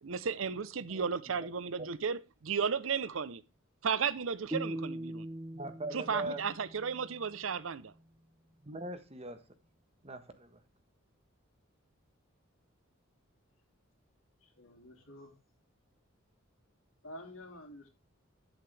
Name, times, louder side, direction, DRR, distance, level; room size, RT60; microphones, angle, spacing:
voice 1, 0.0-3.4 3.8-5.3 5.9-7.9, right 6 dB, 75° right, 0.6 m, -34 dB
sound 1, 4.5-7.6, right 1 dB, 15° right, 0.6 m, -42 dB
voice 2, 5.5-6.4 8.6-9.4 10.0-10.6, right 2 dB, 30° right, 1.3 m, -40 dB
voice 3, 14.4-15.3 17.0-17.9, left 1 dB, 85° left, 2.8 m, -49 dB
8.9 x 7.9 x 3.3 m
head